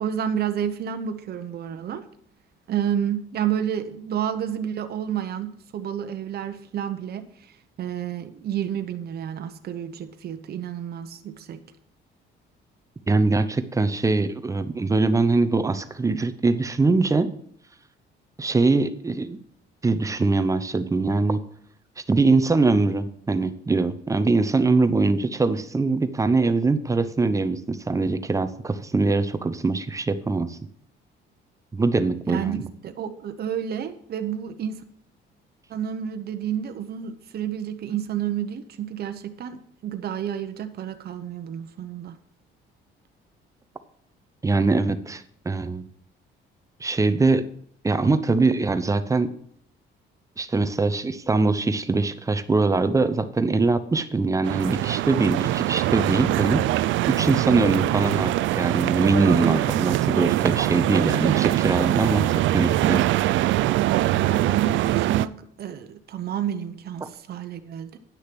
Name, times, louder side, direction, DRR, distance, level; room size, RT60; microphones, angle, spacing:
voice 1, 0.0-2.0 2.7-11.6 32.3-34.8 35.7-42.2 59.4-59.7 64.1-68.0, right 9 dB, 50° right, 0.9 m, -30 dB
voice 2, 13.1-17.3 18.4-19.4 19.8-21.4 22.1-30.6 31.7-32.7 44.4-45.8 46.8-47.4 47.8-49.3 50.4-56.7 57.1-63.0, right 3 dB, 15° right, 0.7 m, -22 dB
sound 1, 54.4-65.3, right 15 dB, 75° right, 0.4 m, -23 dB
10.0 x 6.4 x 6.0 m
cardioid pair, 120°, 20 cm